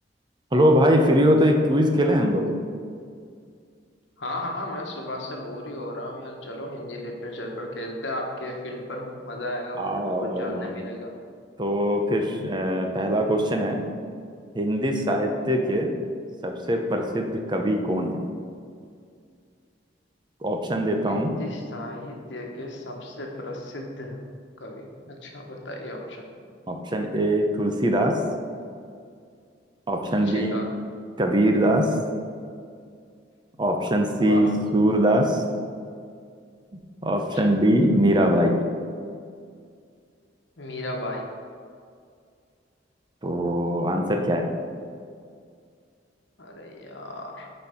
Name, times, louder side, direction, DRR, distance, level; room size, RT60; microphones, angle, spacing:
voice 1, 0.5-2.4 9.8-10.7 11.6-13.8 14.5-15.9 16.4-18.2 20.4-21.3 26.7-28.2 29.9-30.5 31.2-31.9 33.6-35.4 37.0-38.6 43.2-44.5, equal, 25° right, 3 dB, 0.7 m, -22 dB
voice 2, 4.2-11.1 21.1-24.2 24.6-26.3 30.1-30.7 34.1-34.5 37.2-37.5 40.6-41.3 46.4-47.5, left 1 dB, 75° left, 1 dB, 1.2 m, -35 dB
8.5 x 4.3 x 5.7 m, 2.2 s
head